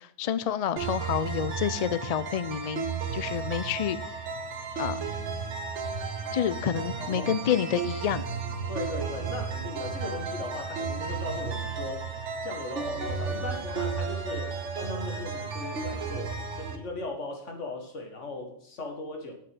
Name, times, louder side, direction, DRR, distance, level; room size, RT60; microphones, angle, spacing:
voice 1, 0.0-4.0 4.8-5.0 6.3-8.3, left 8 dB, 55° left, 14 dB, 0.4 m, -29 dB
sound 1, 0.8-16.8, right 5 dB, 80° right, 1.3 m, -33 dB
voice 2, 7.0-7.3 8.7-12.1 12.4-19.3, left 2 dB, 85° left, 3 dB, 2.0 m, -38 dB
7.7 x 6.2 x 7.7 m, 0.69 s
omnidirectional pair, 1.2 m